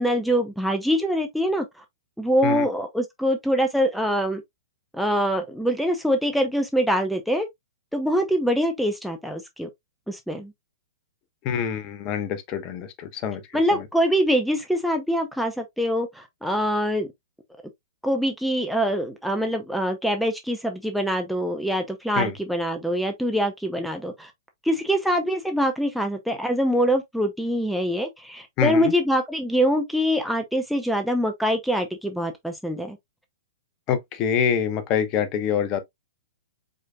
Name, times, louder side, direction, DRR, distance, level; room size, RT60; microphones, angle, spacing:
voice 1, 0.0-1.6 2.2-4.4 4.9-7.5 7.9-9.7 10.1-10.5 13.5-17.1 18.0-24.3 24.6-33.0, equal, ahead, 0.7 m, -24 dB
voice 2, 11.4-13.6 22.2-22.3 28.6-28.9 33.9-35.8, left 7 dB, 35° left, 1.0 m, -25 dB
5.0 x 4.2 x 2.2 m
figure-of-eight pair, 110°, 2 cm